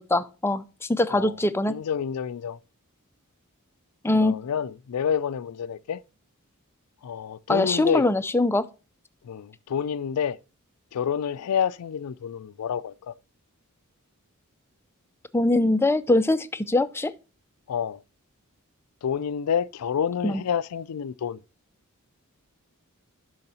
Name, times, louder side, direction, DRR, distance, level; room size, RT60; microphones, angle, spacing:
voice 1, 0.0-1.7 4.0-4.3 7.5-8.6 15.3-17.1 20.2-20.4, left 2 dB, 10° left, 0.4 m, -22 dB
voice 2, 1.7-2.6 4.2-6.0 7.0-8.0 9.2-10.4 10.9-13.1 17.7-18.0 19.0-21.4, left 8 dB, 85° left, 0.4 m, -28 dB
10.5 x 6.4 x 2.8 m
head